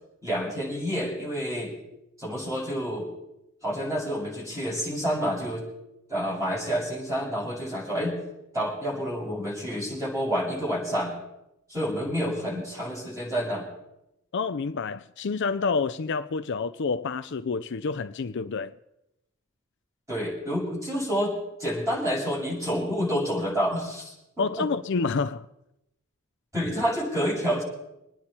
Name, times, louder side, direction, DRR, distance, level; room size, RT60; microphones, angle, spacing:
voice 1, 0.2-1.7 2.2-3.1 3.6-5.7 6.1-8.2 8.5-11.1 11.7-13.7 20.1-21.3 21.6-24.7 26.5-27.6, equal, 15° right, 7.1 m, -29 dB
voice 2, 14.3-18.7 24.4-25.5, left 4 dB, 55° left, 0.5 m, -28 dB
25.5 x 9.8 x 4.4 m
head